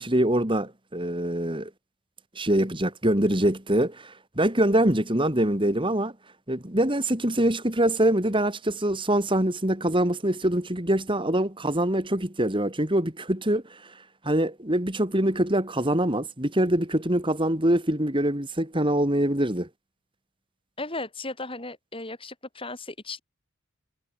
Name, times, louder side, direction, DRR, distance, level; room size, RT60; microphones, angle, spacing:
voice 1, 0.0-1.7 2.3-6.1 6.5-19.7, right 1 dB, 25° right, 3.1 m, -24 dB
voice 2, 20.8-23.2, left 2 dB, 25° left, 7.3 m, -36 dB
head